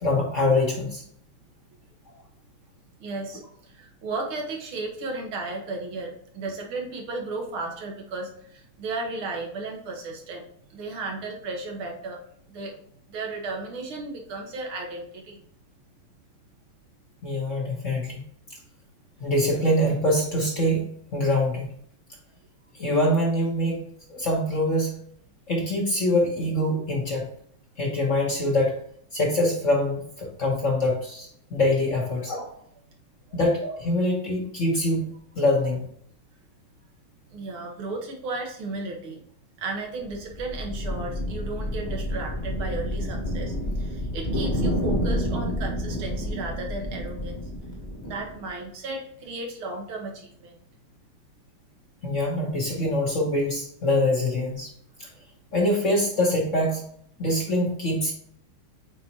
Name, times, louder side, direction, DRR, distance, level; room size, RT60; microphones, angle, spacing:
voice 1, 0.0-1.0 17.2-18.2 19.2-21.7 22.8-23.8 24.1-25.0 25.5-27.2 27.8-28.7 29.1-32.5 33.3-35.0 35.4-35.8 52.0-54.7 55.0-55.1 55.5-56.8 57.2-58.1, left 1 dB, 45° left, -2 dB, 1.2 m, -24 dB
voice 2, 3.0-10.5 10.7-12.2 12.5-12.7 13.1-15.4 33.3-33.4 37.3-39.2 39.6-47.4 48.0-50.5, right 3 dB, 75° right, 1 dB, 2.0 m, -34 dB
sound 1, 40.1-48.5, equal, 25° left, 1.1 m, -29 dB
8.1 x 4.2 x 2.9 m, 0.65 s
omnidirectional pair, 2.3 m